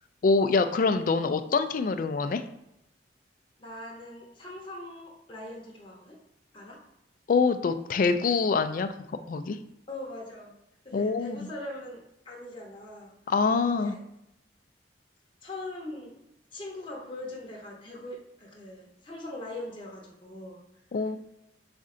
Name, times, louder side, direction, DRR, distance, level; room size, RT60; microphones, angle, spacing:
voice 1, 0.2-2.4 7.3-8.9 9.3-9.6 10.9-11.4 13.3-14.0 20.9-21.2, left 4 dB, 45° left, 9 dB, 0.3 m, -25 dB
voice 2, 3.6-6.2 6.5-6.8 9.9-10.6 10.8-13.2 13.6-14.0 15.4-16.2 16.5-20.6, left 1 dB, 25° left, -4 dB, 0.8 m, -41 dB
4.2 x 2.5 x 3.7 m, 0.84 s
head